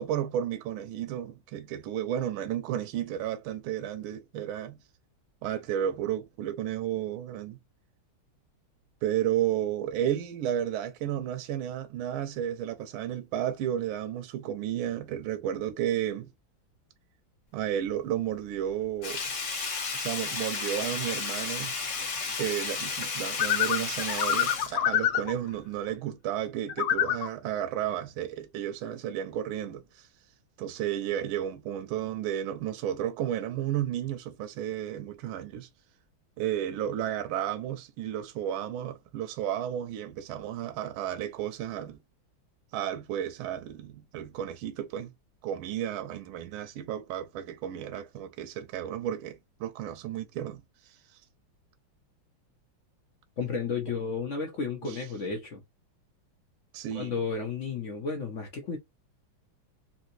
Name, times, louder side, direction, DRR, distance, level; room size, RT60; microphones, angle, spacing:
voice 1, 0.0-4.8 5.4-7.6 9.0-16.3 17.5-19.2 19.9-21.8 22.4-30.1 30.6-35.7 36.4-42.0 42.7-45.1 45.4-51.2 54.8-55.0 56.7-57.1, right 11 dB, 85° right, 1.4 m, -32 dB
Sink (filling or washing), 19.0-25.5 25.9-26.0, left 4 dB, 50° left, 1.0 m, -33 dB
sound 1, 23.4-25.3 26.7-27.3, left 10 dB, 90° left, 1.5 m, -26 dB
voice 2, 53.4-55.6 56.9-58.8, left 5 dB, 70° left, 0.7 m, -32 dB
3.3 x 2.8 x 2.6 m
omnidirectional pair, 2.2 m